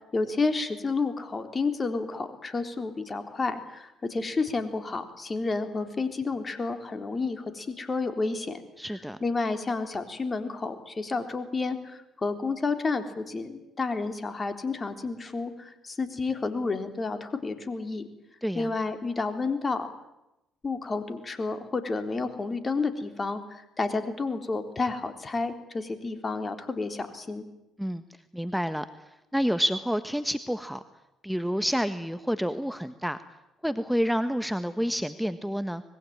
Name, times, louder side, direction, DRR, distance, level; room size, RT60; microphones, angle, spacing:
voice 1, 0.1-8.6 9.2-18.0 18.6-19.9 20.6-27.4, left 3 dB, 35° left, 8 dB, 3.7 m, -30 dB
voice 2, 8.8-9.2 18.4-18.7 27.8-28.0 28.3-28.8 29.3-30.8 31.2-33.2 33.6-35.8, equal, ahead, 10 dB, 1.5 m, -28 dB
25.0 x 21.5 x 9.0 m, 0.91 s
hypercardioid pair, 50°, 0 cm